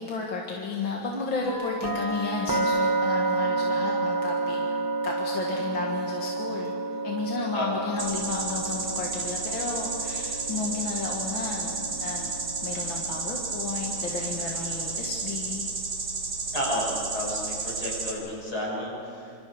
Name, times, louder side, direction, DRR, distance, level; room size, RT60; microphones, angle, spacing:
voice 1, 0.0-4.6 5.0-12.3 12.6-15.7, left 4 dB, 70° left, -1 dB, 2.6 m, -33 dB
sound 1, 1.5-15.3, right 3 dB, 15° right, 0.8 m, -31 dB
sound 2, 8.0-18.1, right 4 dB, 75° right, 3.3 m, -32 dB
voice 2, 16.5-19.4, left 1 dB, 85° left, -3 dB, 7.0 m, -31 dB
26.5 x 26.5 x 4.9 m, 2.5 s
omnidirectional pair, 2.3 m